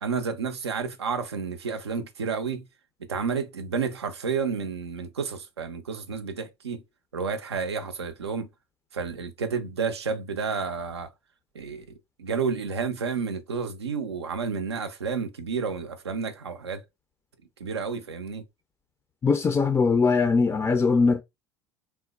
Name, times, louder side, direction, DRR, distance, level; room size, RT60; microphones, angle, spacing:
voice 1, 0.0-2.7 3.1-6.8 7.1-8.5 8.9-11.1 11.5-11.9 12.2-16.8 17.6-18.4, right 5 dB, 85° right, 0.4 m, -30 dB
voice 2, 19.2-21.2, left 4 dB, 20° left, 0.3 m, -21 dB
3.0 x 2.0 x 2.3 m
figure-of-eight pair, 75°, 14 cm